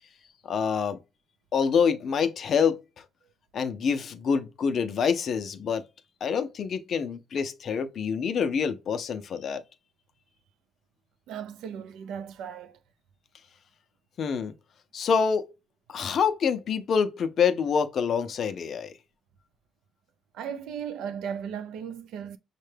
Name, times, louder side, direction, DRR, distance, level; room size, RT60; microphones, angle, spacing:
voice 1, 0.4-1.0 1.5-2.8 3.5-5.8 6.2-9.6 14.2-14.5 14.9-15.4 15.9-18.9, left 6 dB, 40° left, 0.5 m, -26 dB
voice 2, 11.3-12.8 20.3-22.4, right 8 dB, 85° right, 0.5 m, -36 dB
6.4 x 2.2 x 3.2 m
cardioid pair, 170°, 0 cm